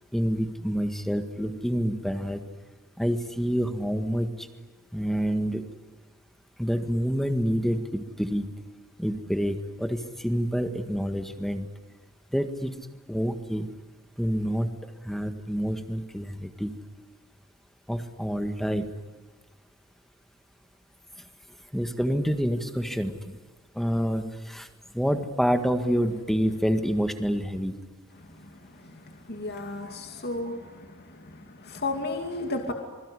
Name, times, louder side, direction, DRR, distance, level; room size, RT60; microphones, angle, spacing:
voice 1, 0.1-2.4 3.0-4.5 4.9-5.6 6.6-8.5 9.0-11.7 12.3-13.7 14.2-14.8 15.0-16.8 17.9-18.9 21.7-23.4 23.7-24.7 24.9-27.7, equal, ahead, 7 dB, 1.7 m, -27 dB
voice 2, 29.3-30.6 31.7-32.7, left 2 dB, 50° left, 4 dB, 2.7 m, -32 dB
27.5 x 22.0 x 9.9 m, 1.4 s
head